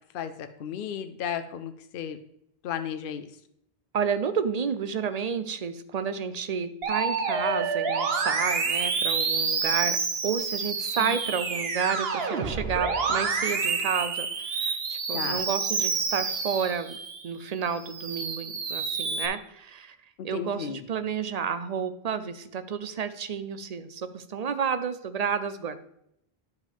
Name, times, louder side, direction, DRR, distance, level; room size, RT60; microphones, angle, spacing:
voice 1, 0.1-2.2 2.6-3.3 11.0-11.2 15.1-15.5 20.2-20.8, left 8 dB, 65° left, 9 dB, 0.7 m, -34 dB
voice 2, 3.9-17.0 17.2-20.0 20.2-25.8, right 6 dB, 50° right, 11 dB, 0.6 m, -31 dB
Musical instrument, 6.8-17.2 17.7-19.3, right 5 dB, 75° right, 1.1 m, -28 dB
10.5 x 5.1 x 3.4 m, 0.76 s
omnidirectional pair, 1.0 m